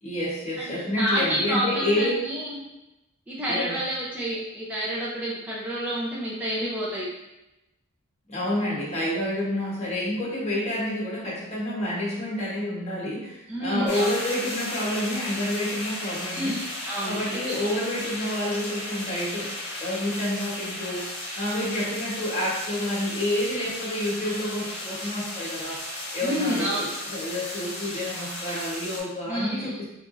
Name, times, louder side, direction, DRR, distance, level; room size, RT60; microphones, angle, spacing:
voice 1, 0.0-2.3 3.5-3.8 8.3-16.5 17.0-21.1 21.4-25.8 26.1-29.8, left 1 dB, 30° left, -6 dB, 1.2 m, -29 dB
voice 2, 0.6-2.6 3.3-7.1 13.5-14.1 16.3-17.5 26.2-26.9 29.3-29.8, equal, 5° right, -7 dB, 0.6 m, -29 dB
sound 1, 13.9-29.0, left 1 dB, 50° left, 1.2 m, -35 dB
3.9 x 3.5 x 2.6 m, 0.93 s
head